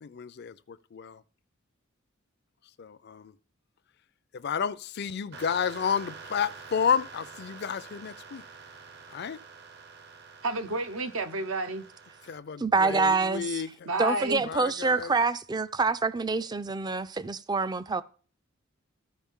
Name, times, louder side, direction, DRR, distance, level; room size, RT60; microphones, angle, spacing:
voice 1, 0.0-1.2 2.8-3.3 4.3-8.4 9.1-9.4 12.3-13.7 14.4-15.1, left 7 dB, 55° left, 0.4 m, -31 dB
sound 1, 5.3-12.4, right 5 dB, 55° right, 0.8 m, -47 dB
voice 2, 10.4-11.8 13.9-14.4, right 2 dB, 85° right, 0.9 m, -30 dB
voice 3, 12.6-13.6 14.0-18.0, right 4 dB, 20° right, 0.3 m, -26 dB
14.0 x 5.1 x 3.6 m
head